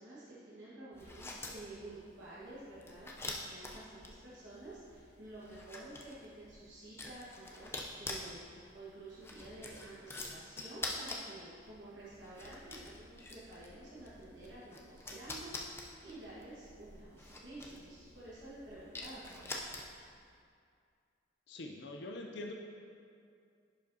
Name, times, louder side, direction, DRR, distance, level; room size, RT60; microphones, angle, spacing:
voice 1, 0.0-19.6, right 2 dB, 70° right, -10 dB, 1.4 m, -51 dB
sound 1, 0.9-20.2, left 2 dB, 15° left, 0.5 m, -47 dB
voice 2, 21.5-22.5, left 2 dB, 65° left, 2 dB, 0.5 m, -44 dB
11.0 x 5.0 x 2.7 m, 2.3 s
head